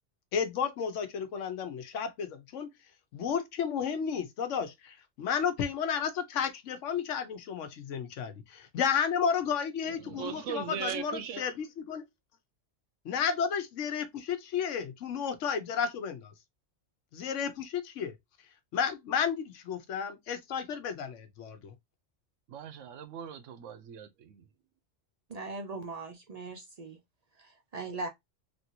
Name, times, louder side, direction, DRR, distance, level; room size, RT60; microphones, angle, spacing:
voice 1, 0.3-2.7 3.1-12.0 13.0-16.3 17.1-18.1 18.7-21.7, left 7 dB, 80° left, 1.0 m, -32 dB
voice 2, 10.0-11.4 22.5-24.4, right 8 dB, 85° right, 1.0 m, -39 dB
voice 3, 25.3-27.0 27.3-28.1, right 3 dB, 50° right, 0.5 m, -39 dB
3.3 x 2.6 x 2.7 m
omnidirectional pair, 1.3 m